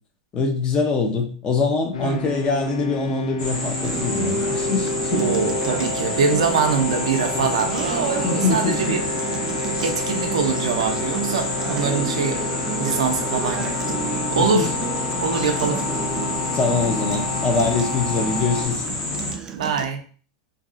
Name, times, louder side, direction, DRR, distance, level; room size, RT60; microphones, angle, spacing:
voice 1, 0.3-5.3 7.3-7.5 8.2-9.0 14.4-14.7 16.5-18.8, left 4 dB, 30° left, 3 dB, 0.6 m, -23 dB
sound 1, 1.9-18.7, left 3 dB, 85° left, 0.4 m, -30 dB
sound 2, 3.4-19.3, left 2 dB, 50° left, 1.3 m, -29 dB
Acoustic guitar, 3.8-19.8, right 8 dB, 20° right, 0.3 m, -33 dB
voice 2, 5.1-9.0 9.8-12.4 12.8-14.0 14.3-14.7 15.2-15.8 19.5-20.0, right 5 dB, 85° right, 5 dB, 0.5 m, -23 dB
2.7 x 2.3 x 2.5 m, 0.41 s
hypercardioid pair, 120°, 3 cm